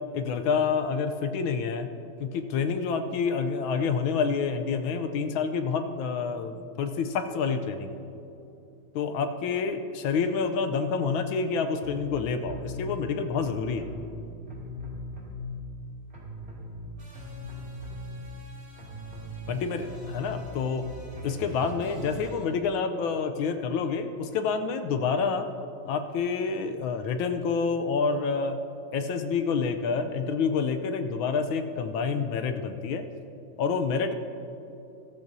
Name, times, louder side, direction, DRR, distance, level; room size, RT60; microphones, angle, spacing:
voice 1, 0.1-1.9 2.2-7.9 8.9-13.9 19.5-19.8 20.1-20.9 21.2-25.5 25.8-28.6 28.9-33.0 33.6-34.2, left 5 dB, 75° left, 8 dB, 1.4 m, -28 dB
sound 1, 11.8-12.9 13.4-15.8 16.1-22.4, left 1 dB, 30° right, 2.7 m, -40 dB
15.0 x 14.0 x 2.7 m, 2.8 s
omnidirectional pair, 2.4 m